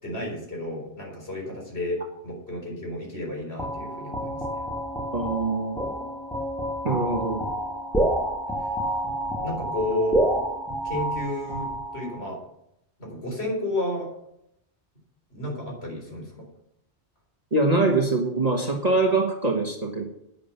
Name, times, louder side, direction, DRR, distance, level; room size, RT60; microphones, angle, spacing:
voice 1, 0.0-4.6 9.4-10.2 10.8-11.7 11.9-12.4 13.0-14.1 15.3-16.5, left 1 dB, 70° left, -1 dB, 4.3 m, -31 dB
sound 1, 3.6-12.3, right 1 dB, 5° left, 1.6 m, -29 dB
voice 2, 5.1-5.7 6.8-7.4 17.5-20.1, right 3 dB, 35° right, 2 dB, 1.5 m, -23 dB
11.0 x 9.4 x 5.8 m, 0.79 s
omnidirectional pair, 1.1 m